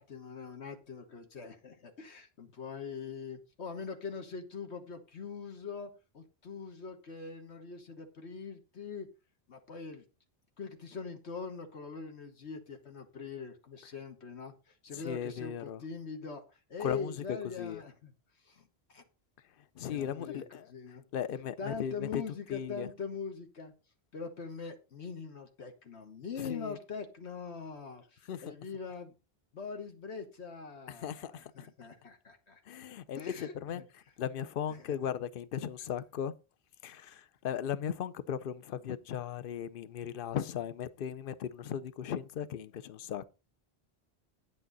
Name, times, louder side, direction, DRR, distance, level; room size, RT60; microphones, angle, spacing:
voice 1, 0.0-9.1 9.5-10.0 10.6-14.5 14.8-16.4 16.7-18.1 18.4-19.0 19.9-21.0 21.6-23.7 24.1-29.1 29.5-32.6 33.1-33.8 34.7-35.0, left 5 dB, 85° left, 1.6 m, -42 dB
voice 2, 14.9-15.8 16.8-17.8 19.8-20.7 21.1-22.2 22.5-22.9 26.4-26.8 28.3-28.5 30.9-31.5 32.7-33.8 34.2-36.3 36.8-43.3, left 9 dB, 60° left, 0.8 m, -37 dB
9.3 x 8.8 x 4.0 m
omnidirectional pair, 1.1 m